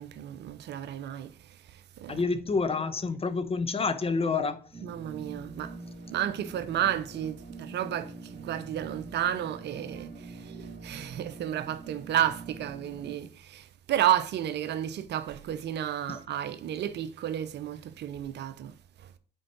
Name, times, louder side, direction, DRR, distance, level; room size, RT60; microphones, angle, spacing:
voice 1, 0.0-2.2 4.8-5.8 6.1-19.1, right 11 dB, 55° right, 0.7 m, -32 dB
voice 2, 2.1-4.6 16.1-16.2, left 4 dB, 30° left, 0.9 m, -28 dB
sound 1, 4.7-13.2, right 3 dB, 40° right, 2.3 m, -44 dB
7.6 x 4.6 x 4.6 m
hypercardioid pair, 55°, 21 cm